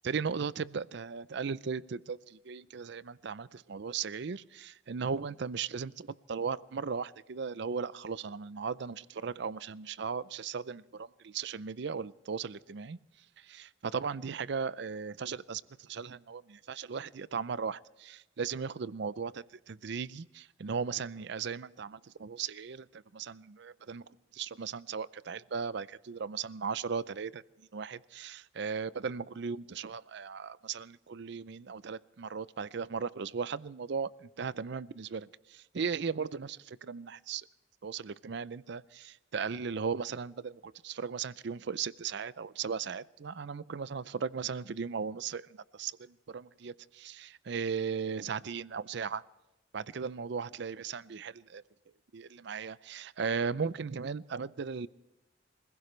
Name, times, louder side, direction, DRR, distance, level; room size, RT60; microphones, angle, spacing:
voice 1, 0.0-13.0 13.4-37.5 37.8-49.2 49.7-51.6 52.1-54.9, right 5 dB, 60° right, 18 dB, 0.5 m, -37 dB
26.5 x 16.0 x 3.2 m, 1.0 s
head